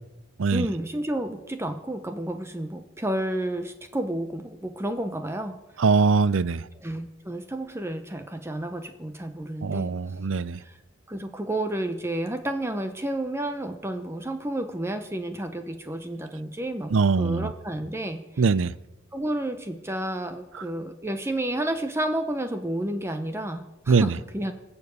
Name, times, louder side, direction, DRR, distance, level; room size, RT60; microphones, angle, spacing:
voice 1, 0.5-5.8 6.7-10.0 10.6-10.8 11.1-18.5 19.1-24.5, right 1 dB, 15° right, 0.8 m, -31 dB
voice 2, 5.8-6.6 9.6-10.6 16.9-17.5 18.4-18.7 23.9-24.1, right 4 dB, 80° right, 0.5 m, -22 dB
20.0 x 7.2 x 8.1 m
head